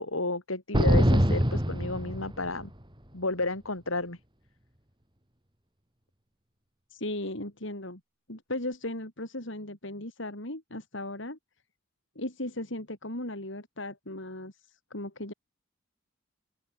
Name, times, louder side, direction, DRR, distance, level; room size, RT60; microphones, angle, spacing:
voice 1, 0.0-2.7 3.1-4.2, left 2 dB, 90° left, 5.7 m, -32 dB
sound 1, 0.7-2.7, equal, 25° right, 5.7 m, -23 dB
voice 2, 6.9-8.0 8.3-11.4 12.2-15.3, left 1 dB, 65° left, 5.8 m, -37 dB
open air
head